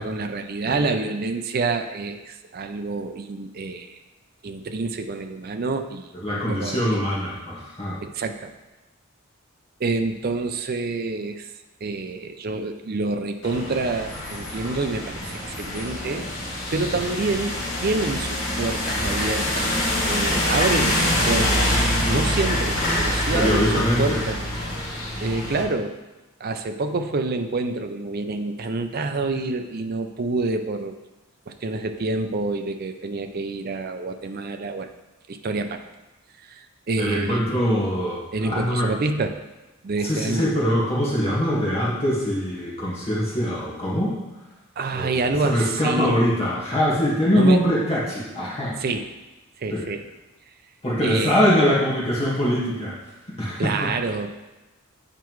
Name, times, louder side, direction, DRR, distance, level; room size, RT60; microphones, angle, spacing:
voice 1, 0.0-4.0 4.4-6.8 8.0-8.5 9.8-11.5 11.8-19.7 20.0-21.7 22.1-24.4 25.2-25.9 26.4-31.0 31.5-34.9 35.3-35.8 36.4-37.4 38.3-39.4 39.8-40.5 44.8-46.2 47.4-47.6 48.8-49.1 49.6-50.0 51.0-51.4 53.6-54.5, right 3 dB, 45° right, 7 dB, 0.5 m, -27 dB
voice 2, 6.2-8.0 23.3-24.2 37.0-38.9 40.0-44.1 44.9-45.1 45.4-48.8 49.7-49.9 50.8-53.0 53.4-53.8, equal, 25° left, -7 dB, 1.7 m, -23 dB
sound 1, 13.4-25.6, left 1 dB, 65° left, 2.3 m, -25 dB
9.0 x 4.6 x 3.1 m, 1.1 s
head